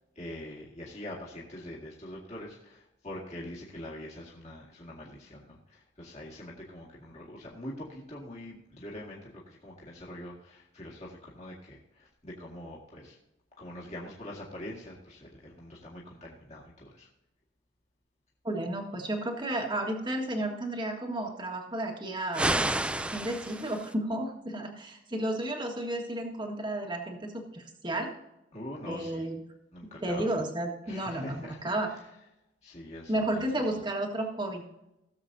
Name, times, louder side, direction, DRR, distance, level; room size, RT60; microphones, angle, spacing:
voice 1, 0.2-13.2 13.6-17.1 28.5-29.3 29.7-30.3 30.8-31.6 32.6-33.5, left 1 dB, 35° left, -4 dB, 1.9 m, -44 dB
voice 2, 18.4-22.5 23.1-28.1 28.8-29.4 30.0-31.9 33.1-34.6, right 1 dB, 25° right, 2 dB, 1.6 m, -32 dB
sound 1, 22.3-23.9, right 1 dB, 5° right, 0.3 m, -30 dB
17.5 x 7.4 x 2.7 m, 0.88 s
head